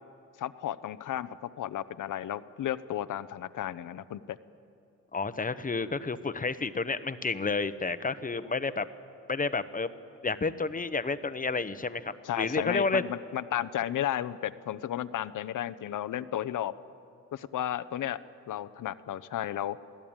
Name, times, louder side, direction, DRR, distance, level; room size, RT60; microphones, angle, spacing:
voice 1, 0.4-4.4 12.2-16.7 17.3-18.2 18.5-19.8, left 11 dB, 65° left, 13 dB, 0.8 m, -33 dB
voice 2, 5.1-8.9 9.3-9.9 10.2-13.0, left 4 dB, 25° left, 12 dB, 1.0 m, -30 dB
27.5 x 16.5 x 8.9 m, 2.7 s
cardioid pair, 80°, 33 cm